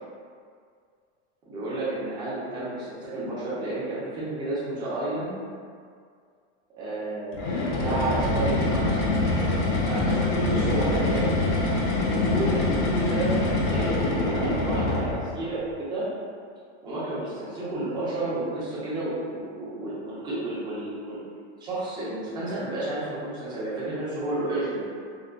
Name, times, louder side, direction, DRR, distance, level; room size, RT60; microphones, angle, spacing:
voice 1, 1.5-5.3 6.8-9.1 9.8-11.3 12.0-16.1 16.8-21.2 21.6-24.9, right 2 dB, 15° right, -9 dB, 0.5 m, -31 dB
sound 1, 7.3-15.4, left 2 dB, 45° left, 0.5 m, -25 dB
3.7 x 2.3 x 2.3 m, 2.2 s
supercardioid pair, 165°, 35 cm